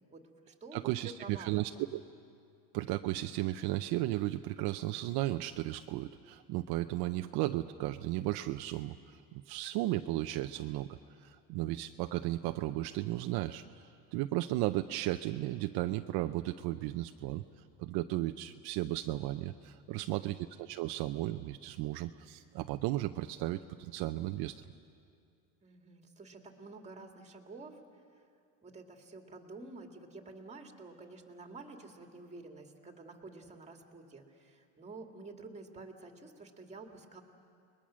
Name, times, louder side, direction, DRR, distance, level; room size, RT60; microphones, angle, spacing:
voice 1, 0.1-1.8 19.9-20.4 25.6-27.8 28.1-28.2 28.6-37.2, right 3 dB, 15° right, 3 dB, 2.1 m, -50 dB
voice 2, 0.7-2.0 2.7-10.9 11.2-17.4 17.8-24.5, right 16 dB, 65° right, 8 dB, 0.7 m, -35 dB
30.0 x 21.0 x 6.3 m, 2.4 s
cardioid pair, 140°, 41 cm